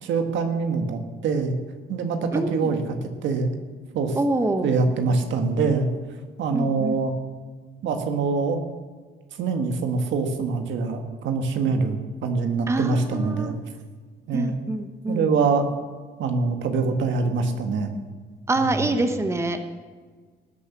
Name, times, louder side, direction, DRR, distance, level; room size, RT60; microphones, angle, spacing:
voice 1, 0.0-1.6 1.9-2.8 3.2-3.5 3.9-4.2 4.6-5.9 6.4-7.1 7.8-8.6 9.4-13.5 14.3-14.6 15.1-15.7 16.2-17.9 18.6-18.7, right 4 dB, 85° right, 6 dB, 1.6 m, -24 dB
voice 2, 2.3-2.7 4.1-4.7 6.5-7.0 12.7-13.6 14.3-15.3 18.5-19.6, right 2 dB, 15° right, 7 dB, 1.0 m, -25 dB
19.0 x 7.0 x 6.0 m, 1.5 s
cardioid pair, 120°, 19 cm